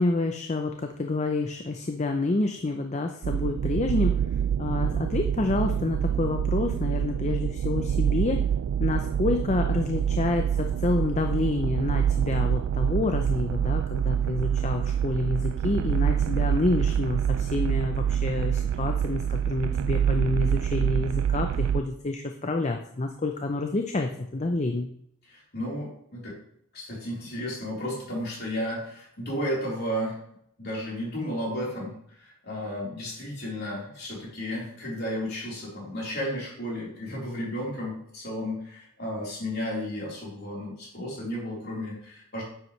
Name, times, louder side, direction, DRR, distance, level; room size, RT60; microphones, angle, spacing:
voice 1, 0.0-4.2 4.6-8.4 8.8-24.9, left 2 dB, 30° left, 4 dB, 0.5 m, -28 dB
sound 1, 3.2-21.8, right 9 dB, 80° right, 0.3 m, -26 dB
voice 2, 25.3-26.4 26.7-30.2 30.6-31.9 32.2-42.4, equal, 45° left, -5 dB, 4.0 m, -33 dB
9.8 x 7.8 x 3.2 m, 0.69 s
head